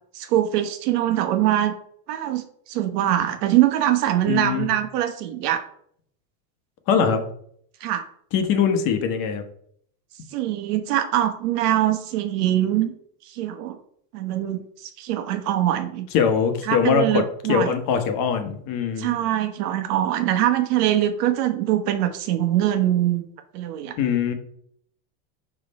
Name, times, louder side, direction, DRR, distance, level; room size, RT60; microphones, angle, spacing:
voice 1, 0.1-1.7 2.1-5.6 7.8-8.0 10.3-12.9 13.2-13.8 14.1-16.1 16.6-17.7 19.0-23.2 23.5-23.9, right 12 dB, 80° right, 7 dB, 1.2 m, -23 dB
voice 2, 4.3-4.7 6.9-7.2 8.3-9.4 16.1-17.2 17.5-19.1 24.0-24.3, left 7 dB, 45° left, 7 dB, 1.1 m, -22 dB
5.5 x 5.1 x 4.1 m, 0.64 s
supercardioid pair, 145°, 46 cm